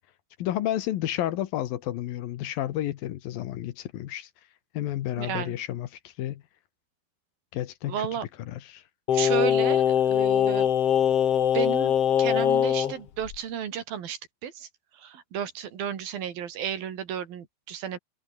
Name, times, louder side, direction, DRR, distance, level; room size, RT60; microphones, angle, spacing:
voice 1, 0.4-4.3 4.7-6.4 7.5-8.1 8.4-8.8, left 13 dB, 70° left, 2.8 m, -31 dB
voice 2, 5.2-5.5 7.9-8.3 9.1-10.7 11.5-14.7 14.9-18.0, right 9 dB, 70° right, 4.1 m, -33 dB
Singing, 9.1-12.9 13.3-13.4, left 9 dB, 50° left, 2.1 m, -22 dB
omnidirectional pair, 4.5 m